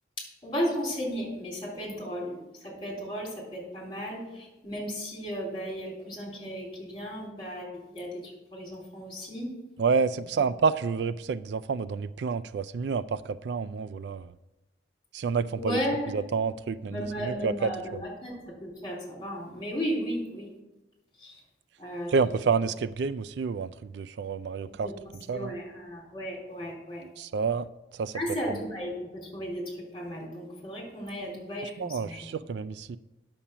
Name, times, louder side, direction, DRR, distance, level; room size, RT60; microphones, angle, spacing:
voice 1, 0.2-9.5 15.6-16.2 16.9-20.5 21.2-21.4 21.8-22.1 24.7-24.9 25.3-27.0 28.1-32.3, equal, 25° left, 3.7 m, -35 dB
voice 2, 9.8-14.3 15.1-15.8 16.1-17.7 22.1-24.9 25.3-25.5 27.0-27.7 27.9-28.2 31.8-33.0, right 5 dB, 65° right, 0.3 m, -29 dB
9.9 x 7.1 x 5.9 m
head